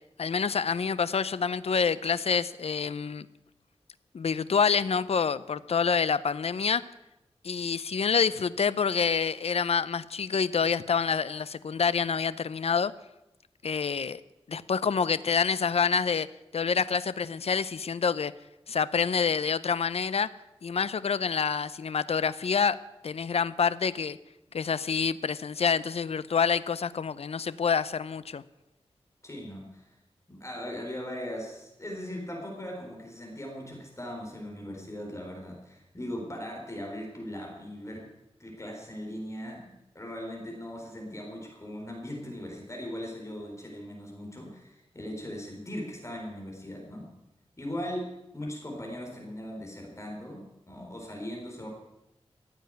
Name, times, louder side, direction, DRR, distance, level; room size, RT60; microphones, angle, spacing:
voice 1, 0.2-3.3 4.1-6.9 7.4-12.9 13.6-14.2 14.5-16.3 16.5-18.3 18.7-20.3 20.6-22.8 23.0-24.2 24.5-28.4, left 6 dB, 70° left, 16 dB, 0.6 m, -27 dB
voice 2, 29.2-29.9 30.3-38.1 38.4-47.1 47.6-48.1 48.3-51.7, equal, 25° left, -1 dB, 4.0 m, -39 dB
15.5 x 8.0 x 9.3 m, 0.91 s
wide cardioid pair, 95°, 11 cm